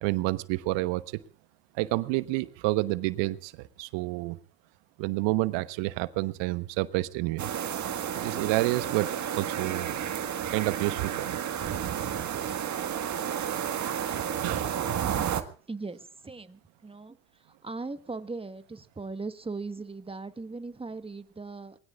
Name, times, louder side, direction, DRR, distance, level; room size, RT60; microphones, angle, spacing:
voice 1, 0.0-1.0 1.8-3.5 3.8-4.4 5.0-7.5 8.2-9.1 9.4-9.9 10.5-11.4 14.4-14.8, right 20 dB, 60° right, 14 dB, 1.2 m, -29 dB
sound 1, 7.4-15.4, right 9 dB, 35° right, 1.7 m, -31 dB
voice 2, 15.7-21.8, right 3 dB, 10° right, 11 dB, 1.3 m, -39 dB
26.5 x 20.5 x 2.5 m, 0.41 s
hypercardioid pair, 80°, 50 cm